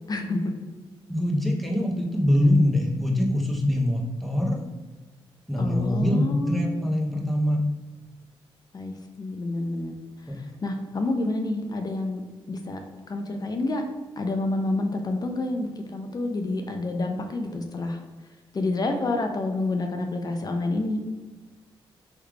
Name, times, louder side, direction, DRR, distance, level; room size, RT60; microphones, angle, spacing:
voice 1, 0.1-0.6 5.6-6.7 8.7-9.9 10.4-12.2 12.5-13.8 14.2-18.0 18.5-21.0, left 2 dB, 40° left, 5 dB, 0.5 m, -28 dB
voice 2, 1.1-4.6 5.5-7.6 10.3-10.4, left 1 dB, ahead, -1 dB, 0.7 m, -23 dB
3.3 x 3.2 x 2.3 m, 1.2 s
cardioid pair, 65°, 10 cm